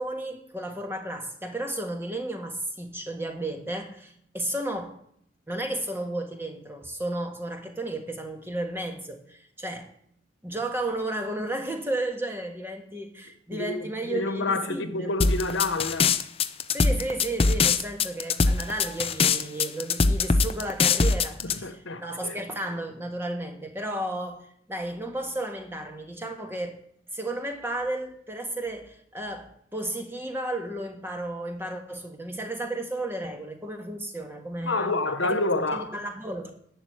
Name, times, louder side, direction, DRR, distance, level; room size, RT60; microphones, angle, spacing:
voice 1, 0.0-5.0 5.5-9.9 10.4-15.1 16.7-26.8 27.1-34.9 35.2-35.4 35.7-36.5, right 1 dB, 10° right, 1.6 m, -33 dB
voice 2, 13.5-16.1 21.6-22.4 34.7-35.9, left 2 dB, 85° left, 1.2 m, -28 dB
sound 1, 15.2-21.6, left 4 dB, 30° left, 0.6 m, -22 dB
11.0 x 7.2 x 9.3 m
head